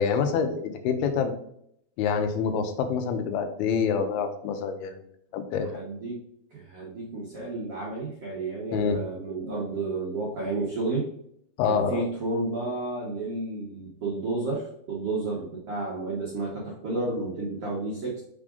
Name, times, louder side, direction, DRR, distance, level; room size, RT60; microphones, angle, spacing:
voice 1, 0.0-1.3 2.0-5.0 5.3-5.8 8.7-9.0 11.6-12.0, left 6 dB, 80° left, 6 dB, 2.6 m, -26 dB
voice 2, 5.7-6.2 6.5-11.1 11.7-18.2, right 3 dB, 75° right, -4 dB, 1.3 m, -31 dB
5.9 x 3.7 x 5.1 m, 0.71 s
omnidirectional pair, 4.7 m